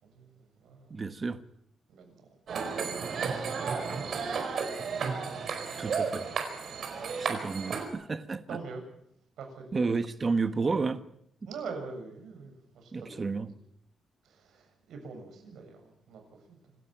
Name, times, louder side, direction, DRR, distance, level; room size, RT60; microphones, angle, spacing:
voice 1, 0.0-1.0 1.9-2.7 3.4-4.7 5.6-5.7 6.6-6.8 8.5-8.8 9.4-9.9 11.5-13.3 14.2-16.8, right 4 dB, 80° right, 7.1 m, -45 dB
voice 2, 0.9-1.4 5.8-6.3 7.2-8.6 9.7-11.0 12.9-13.5, right 4 dB, 25° right, 1.3 m, -31 dB
Hare krishnas on busy street, 2.5-7.9, right 5 dB, 55° right, 4.7 m, -33 dB
26.5 x 13.0 x 9.1 m
wide cardioid pair, 165°, 0 cm